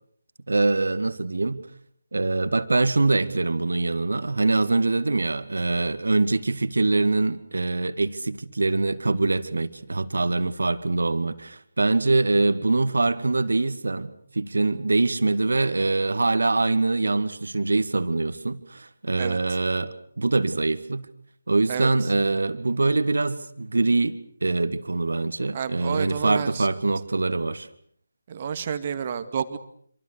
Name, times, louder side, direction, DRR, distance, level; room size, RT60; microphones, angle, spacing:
voice 1, 0.5-1.6 2.1-21.1 21.5-27.7, right 3 dB, 60° right, 12 dB, 2.1 m, -24 dB
voice 2, 21.7-22.1 25.5-26.7 28.3-29.6, right 7 dB, 30° right, 11 dB, 2.2 m, -30 dB
27.0 x 26.0 x 6.8 m, 0.62 s
figure-of-eight pair, 150°, 0 cm